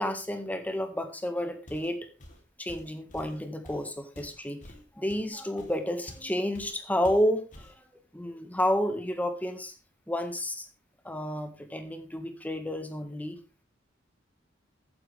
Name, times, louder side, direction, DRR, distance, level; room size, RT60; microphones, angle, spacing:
voice 1, 0.0-2.1 2.6-7.7 8.1-9.7 10.1-10.7 11.0-13.4, equal, 10° left, 6 dB, 1.7 m, -31 dB
Walk footsteps, 1.7-1.9 2.2-6.3 6.5-6.8 7.0-7.8, equal, 40° left, 3.2 m, -48 dB
14.0 x 9.8 x 3.5 m, 0.30 s
head